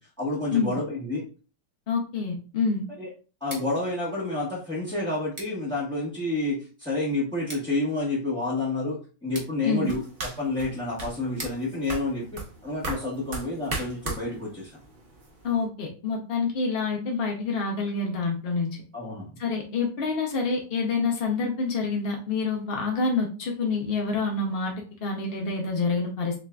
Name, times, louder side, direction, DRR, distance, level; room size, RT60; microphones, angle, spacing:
voice 1, 0.2-1.3 3.0-3.1 3.4-14.7 18.9-19.3, left 2 dB, 5° left, -8 dB, 0.8 m, -29 dB
voice 2, 1.9-2.8 9.6-9.9 15.4-18.8 19.4-24.7 25.0-26.3, left 4 dB, 60° left, 1 dB, 0.6 m, -27 dB
Scissors, 3.3-13.2, right 1 dB, 20° right, 1.1 m, -48 dB
sound 1, 9.8-15.7, right 2 dB, 40° right, 0.9 m, -38 dB
7.1 x 2.5 x 2.2 m, 0.37 s
omnidirectional pair, 1.9 m